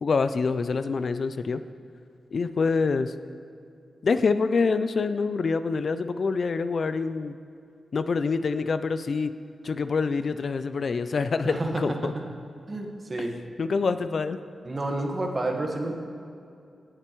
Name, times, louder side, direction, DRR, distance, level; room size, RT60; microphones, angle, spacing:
voice 1, 0.0-1.6 2.3-3.1 4.0-7.4 7.9-9.3 9.6-12.1 13.2-13.3 13.6-14.4, left 4 dB, 60° left, 11 dB, 0.4 m, -26 dB
voice 2, 11.4-11.8 12.7-13.3 14.6-15.9, right 2 dB, 35° right, 2 dB, 1.4 m, -29 dB
17.5 x 7.5 x 3.1 m, 2.5 s
cardioid pair, 80°, 0 cm